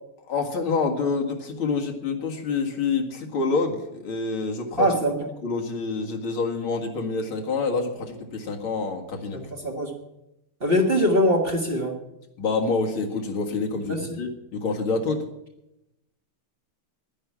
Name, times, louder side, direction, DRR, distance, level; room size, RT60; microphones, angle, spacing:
voice 1, 0.3-4.9 5.4-9.4 12.4-15.2, left 4 dB, 75° left, 2 dB, 2.6 m, -27 dB
voice 2, 4.8-5.3 9.3-9.9 10.6-12.0 13.9-14.2, equal, 30° right, 1 dB, 1.7 m, -23 dB
10.5 x 10.0 x 9.6 m, 0.89 s
omnidirectional pair, 2.3 m